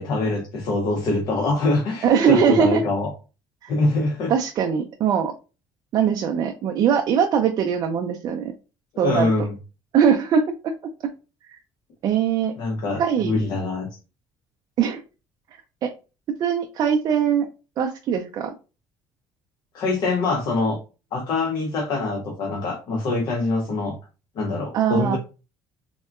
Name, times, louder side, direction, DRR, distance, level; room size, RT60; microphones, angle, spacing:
voice 1, 0.0-3.1 3.7-4.3 8.9-9.6 12.6-13.9 19.7-20.8 21.1-24.0 24.4-25.2, left 2 dB, 55° left, 1 dB, 0.6 m, -24 dB
voice 2, 2.0-2.8 3.6-3.7 4.3-5.3 5.9-8.5 9.0-9.3 9.9-11.1 11.5-11.6 12.0-12.5 13.0-13.4 14.8-15.0 15.8-15.9 16.3-17.5 17.8-18.5 24.7-25.2, right 7 dB, 50° right, 3 dB, 0.4 m, -21 dB
3.6 x 2.1 x 2.3 m, 0.32 s
cardioid pair, 115°, 8 cm